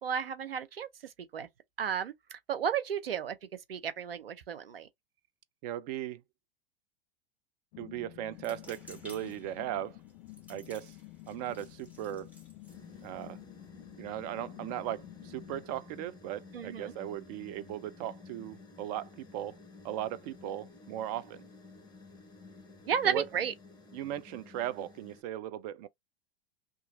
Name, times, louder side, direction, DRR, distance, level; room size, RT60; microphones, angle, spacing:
voice 1, 0.0-0.9 1.3-1.5 1.8-3.4 3.7-4.9 16.5-16.9 22.9-23.5, right 8 dB, 80° right, 0.7 m, -33 dB
voice 2, 5.6-6.2 7.8-10.0 10.5-10.9 11.3-12.3 13.0-13.4 14.0-19.6 19.8-21.4 23.0-23.2 23.9-25.9, right 12 dB, 45° right, 0.4 m, -37 dB
sound 1, 7.7-15.7, left 17 dB, 50° left, 0.5 m, -51 dB
sound 2, 8.3-13.7, left 1 dB, 5° right, 1.2 m, -56 dB
sound 3, 12.7-25.2, left 3 dB, 15° left, 1.0 m, -53 dB
2.8 x 2.5 x 2.5 m
figure-of-eight pair, 90°, 29 cm